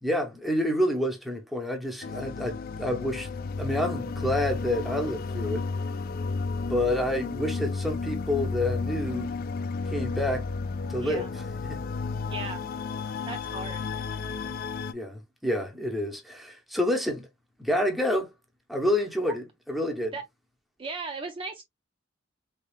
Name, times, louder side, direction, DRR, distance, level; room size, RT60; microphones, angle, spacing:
voice 1, 0.0-3.3 3.6-5.6 6.7-9.3 9.9-10.4 10.9-11.8 14.9-17.3 17.6-18.3 18.7-20.1, left 1 dB, ahead, 0.8 m, -28 dB
sound 1, 2.0-14.9, left 4 dB, 50° left, 0.3 m, -32 dB
voice 2, 11.0-11.3 12.3-12.6 13.3-13.8 20.1-20.2 20.8-21.6, right 4 dB, 25° right, 0.4 m, -36 dB
3.6 x 3.5 x 2.3 m
head